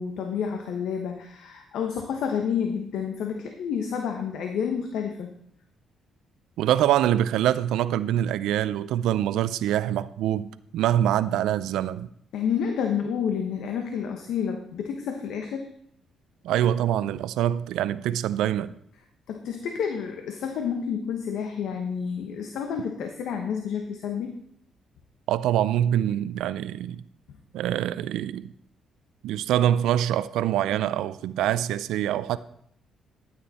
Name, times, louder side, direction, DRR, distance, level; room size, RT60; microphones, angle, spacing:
voice 1, 0.0-5.3 12.3-15.7 19.3-24.4 27.3-27.4, left 7 dB, 80° left, 1.1 m, -29 dB
voice 2, 6.6-12.1 16.4-18.7 25.3-27.0 27.5-28.5 29.2-32.4, right 11 dB, 85° right, 0.5 m, -25 dB
13.0 x 8.8 x 4.2 m
cardioid pair, 90°, 0 cm